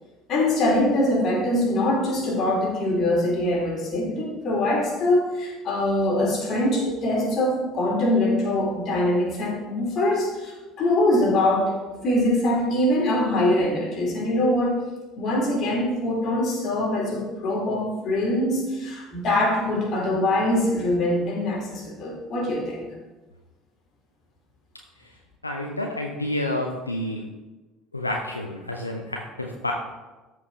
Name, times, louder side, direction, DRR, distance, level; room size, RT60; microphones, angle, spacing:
voice 1, 0.3-11.8 12.0-14.8 15.2-22.9, left 1 dB, 45° left, -2 dB, 2.8 m, -23 dB
voice 2, 25.4-27.2 27.9-29.7, left 1 dB, 85° left, 1 dB, 0.6 m, -29 dB
13.0 x 4.9 x 3.5 m, 1.2 s
figure-of-eight pair, 60°, 0 cm